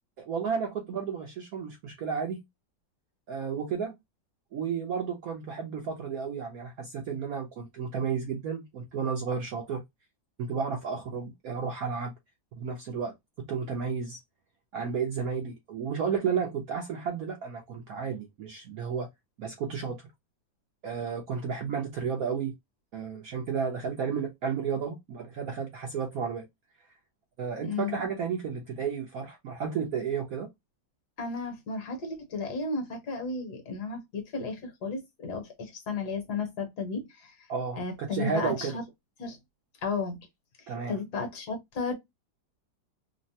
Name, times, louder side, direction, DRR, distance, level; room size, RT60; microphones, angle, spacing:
voice 1, 0.2-2.4 3.3-4.0 4.5-9.8 10.4-12.1 12.6-14.2 14.7-19.1 19.4-20.0 20.8-22.5 22.9-26.5 27.4-30.5 37.5-38.8 40.7-41.0, right 6 dB, 70° right, 0.9 m, -32 dB
voice 2, 27.6-28.0 31.2-37.3 37.8-38.8 39.2-39.4 39.8-40.2 40.9-41.9, left 4 dB, 65° left, 1.3 m, -34 dB
3.2 x 2.1 x 2.6 m
omnidirectional pair, 2.1 m